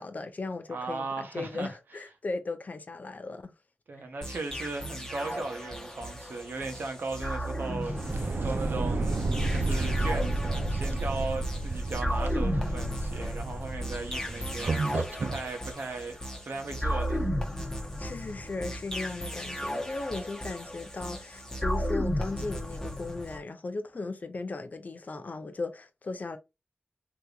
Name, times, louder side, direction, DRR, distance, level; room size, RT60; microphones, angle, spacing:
voice 1, 0.0-3.5 18.0-26.4, left 3 dB, 55° left, 0.6 m, -37 dB
voice 2, 0.7-1.7 3.9-9.2 9.5-16.2 16.4-17.3, right 3 dB, 80° right, 0.9 m, -37 dB
sound 1, 4.2-23.4, equal, 15° left, 0.9 m, -35 dB
sound 2, 7.8-15.4, right 2 dB, 65° right, 0.5 m, -31 dB
3.4 x 2.9 x 2.4 m
wide cardioid pair, 85°, 3 cm